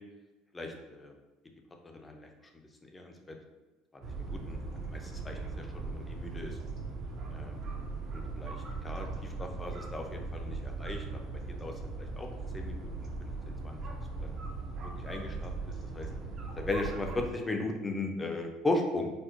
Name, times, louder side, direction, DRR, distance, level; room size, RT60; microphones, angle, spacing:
voice 1, 0.5-1.1 1.8-2.3 2.5-3.4 3.9-4.6 4.9-6.6 7.3-7.8 8.1-11.3 11.6-13.8 14.2-14.4 15.0-15.5 15.9-16.1 16.6-19.1, left 2 dB, 15° left, 3 dB, 0.4 m, -37 dB
sound 1, 4.0-17.3, right 3 dB, 40° right, 0.6 m, -39 dB
4.3 x 2.1 x 2.4 m, 1.1 s
supercardioid pair, 120°, 0 cm